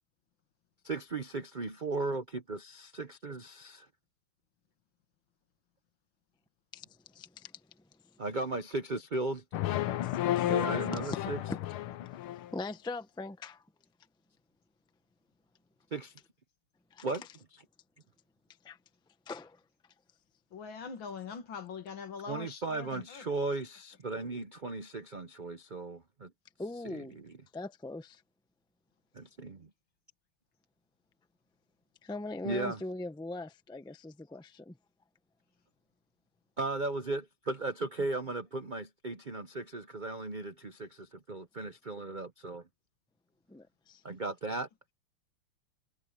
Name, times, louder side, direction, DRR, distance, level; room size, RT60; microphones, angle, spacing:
voice 1, 0.8-3.9 8.2-9.4 10.5-11.4 15.9-16.1 17.0-17.2 22.3-26.3 26.8-27.3 29.1-29.6 32.4-32.8 36.6-42.6 44.0-44.7, right 2 dB, 75° right, 0.4 m, -36 dB
voice 2, 7.1-7.5 10.0-10.5 10.9-11.2 11.5-11.6 12.5-13.6 16.9-17.1 18.6-18.8 19.3-19.6 26.6-27.1 27.5-28.2 32.0-34.8 43.5-44.0, left 2 dB, 5° left, 0.6 m, -41 dB
sound 1, 9.5-12.5, left 13 dB, 85° left, 1.8 m, -32 dB
voice 3, 20.5-23.4, left 6 dB, 65° left, 2.5 m, -43 dB
omnidirectional pair, 2.3 m